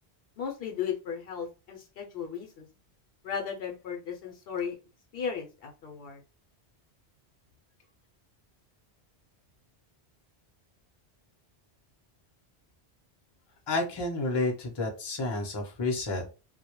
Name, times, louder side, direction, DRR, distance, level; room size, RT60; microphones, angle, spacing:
voice 1, 0.4-2.7 3.2-4.7 5.1-6.2, left 7 dB, 65° left, 2 dB, 0.7 m, -35 dB
voice 2, 13.7-16.3, left 2 dB, 30° left, 2 dB, 0.5 m, -30 dB
2.2 x 2.1 x 2.9 m, 0.32 s
omnidirectional pair, 1.1 m